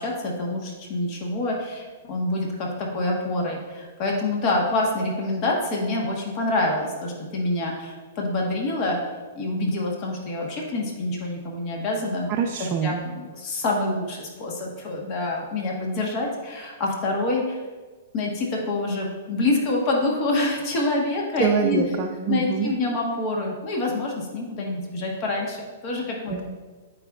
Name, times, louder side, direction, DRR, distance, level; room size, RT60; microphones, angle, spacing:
voice 1, 0.0-9.0 9.3-12.3 12.8-17.6 18.1-21.8 22.3-26.4, left 2 dB, 35° left, -1 dB, 1.2 m, -26 dB
voice 2, 12.3-13.0 21.4-22.7 26.3-26.4, right 6 dB, 30° right, 0 dB, 0.5 m, -24 dB
8.6 x 5.0 x 2.4 m, 1.4 s
hypercardioid pair, 140°, 0 cm